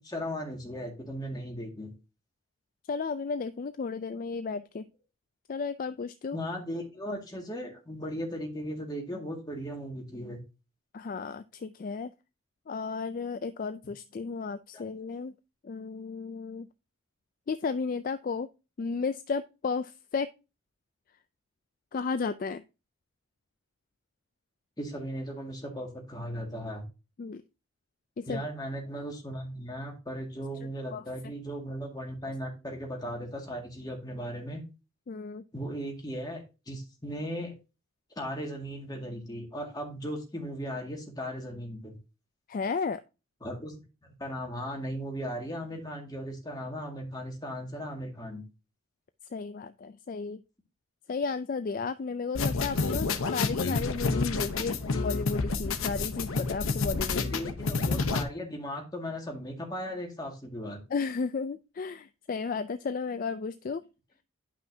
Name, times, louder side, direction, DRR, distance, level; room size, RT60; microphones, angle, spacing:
voice 1, 0.0-1.9 6.3-10.4 14.7-14.9 24.8-26.8 28.3-34.6 35.5-37.6 38.2-42.0 43.4-43.7 44.0-48.4 57.3-60.8, equal, 20° left, 1 dB, 1.9 m, -37 dB
voice 2, 2.9-4.9 5.5-6.4 10.9-12.1 12.7-15.3 15.6-16.7 17.5-18.5 18.8-20.3 21.9-22.6 27.2-27.4 28.2-28.4 30.9-31.0 35.1-35.4 42.5-43.0 49.3-50.4 51.1-57.4 60.9-63.8, left 4 dB, 40° left, 11 dB, 0.3 m, -33 dB
sound 1, 52.3-58.2, left 4 dB, 85° left, 0.9 m, -29 dB
10.5 x 5.7 x 2.7 m, 0.29 s
head